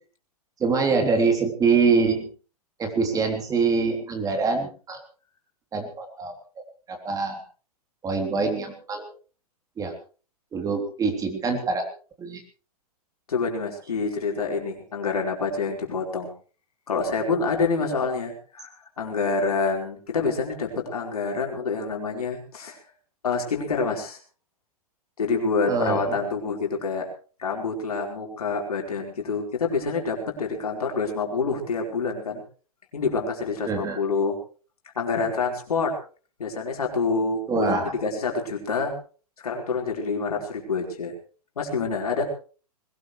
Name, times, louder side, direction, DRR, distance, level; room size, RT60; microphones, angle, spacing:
voice 1, 0.6-2.3 2.8-5.0 5.7-6.3 6.9-7.4 8.0-9.0 9.8-9.9 10.5-11.9 12.2-12.4 25.7-26.2 33.7-34.0 37.5-37.9, right 4 dB, 20° right, 4 dB, 3.3 m, -24 dB
voice 2, 13.3-16.3 16.9-22.8 23.2-24.2 25.2-27.1 27.4-32.4 32.9-34.4 34.9-36.0 36.4-38.9 39.4-41.1 41.6-42.2, left 4 dB, 70° left, 1 dB, 4.8 m, -27 dB
21.0 x 18.5 x 3.3 m, 0.38 s
figure-of-eight pair, 110°, 20 cm